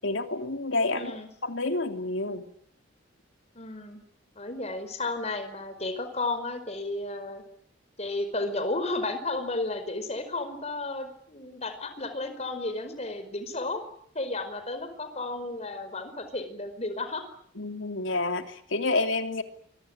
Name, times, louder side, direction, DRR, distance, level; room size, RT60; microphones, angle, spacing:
voice 1, 0.0-1.2 1.4-2.5 17.6-19.4, left 2 dB, 85° left, 6 dB, 3.0 m, -29 dB
voice 2, 0.9-1.3 3.5-4.0 4.3-7.4 8.0-13.8 14.1-17.2, left 2 dB, 35° left, 9 dB, 5.0 m, -33 dB
27.5 x 23.5 x 8.9 m, 0.64 s
head